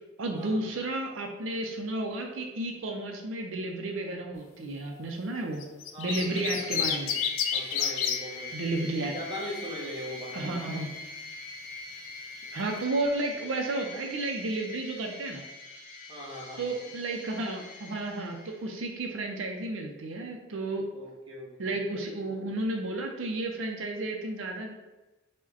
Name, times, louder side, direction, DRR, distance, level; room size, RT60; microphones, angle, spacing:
voice 1, 0.2-5.6 6.0-7.1 8.5-9.1 10.3-10.9 12.5-15.4 16.6-20.9 21.6-24.7, right 2 dB, 75° right, 2 dB, 0.5 m, -32 dB
sound 1, 5.6-8.2 9.4-9.9, left 8 dB, 85° left, 0.4 m, -29 dB
voice 2, 5.9-6.9 7.5-8.7 9.0-10.6 16.1-16.6 20.9-21.7, equal, 25° right, -4 dB, 1.0 m, -40 dB
sound 2, 6.1-18.9, left 2 dB, 40° left, 0.8 m, -43 dB
4.8 x 2.2 x 4.0 m, 1.1 s
head